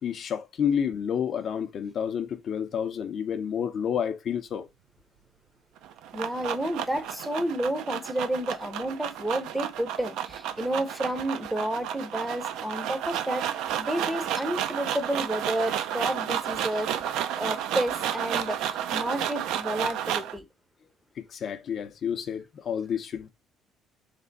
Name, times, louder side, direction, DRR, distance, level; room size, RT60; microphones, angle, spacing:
voice 1, 0.0-4.7 21.2-23.3, left 8 dB, 50° left, 0.5 m, -30 dB
sound 1, 5.8-20.4, right 10 dB, 80° right, 0.5 m, -32 dB
voice 2, 6.1-13.4 13.8-16.9 17.4-20.4, right 1 dB, 5° right, 0.6 m, -30 dB
3.4 x 3.3 x 3.9 m
cardioid pair, 115°, 0 cm